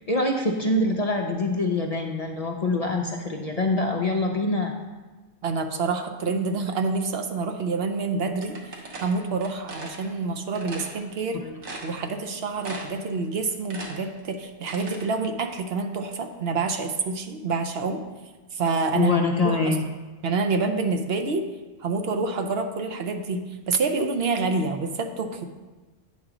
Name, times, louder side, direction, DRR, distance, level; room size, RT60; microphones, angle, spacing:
voice 1, 0.1-4.7 18.9-19.9, left 2 dB, 45° left, 1 dB, 0.5 m, -24 dB
voice 2, 5.4-8.7 9.0-11.4 11.8-18.0 18.5-19.1 19.4-19.8 20.2-21.4 21.8-25.5, right 4 dB, 65° right, 5 dB, 0.9 m, -27 dB
sound 1, 8.4-10.0 10.5-10.9 11.3-11.4 11.6-12.3 12.6-13.1 13.4-15.1, right 2 dB, 85° right, 1.4 m, -38 dB
9.2 x 3.8 x 6.0 m, 1.2 s
omnidirectional pair, 1.2 m